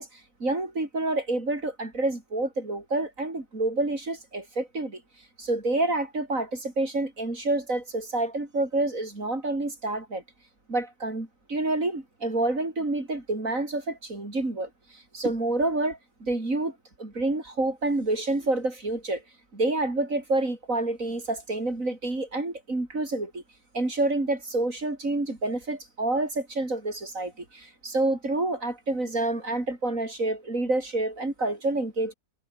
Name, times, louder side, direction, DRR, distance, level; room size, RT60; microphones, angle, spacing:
voice 1, 0.0-5.0 5.4-10.2 10.7-19.2 19.5-23.4 23.7-32.1, right 2 dB, 55° right, 5.3 m, -28 dB
omnidirectional pair, 1.7 m